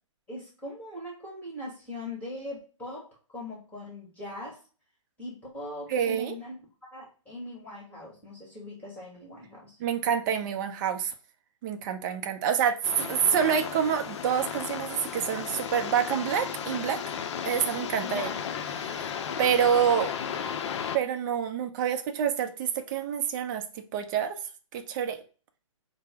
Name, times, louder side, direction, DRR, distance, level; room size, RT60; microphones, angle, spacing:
voice 1, 0.3-4.6 5.2-6.6 6.9-9.8 18.0-18.4, left 1 dB, 10° left, -4 dB, 1.4 m, -40 dB
voice 2, 5.9-6.3 9.8-11.1 11.6-17.0 17.4-18.3 18.8-19.1 19.4-20.1 20.9-24.4 24.7-25.2, right 8 dB, 35° right, 6 dB, 0.5 m, -27 dB
sound 1, 12.8-21.0, left 7 dB, 60° left, 0.5 m, -34 dB
4.5 x 2.0 x 3.2 m, 0.37 s
hypercardioid pair, 135°, 17 cm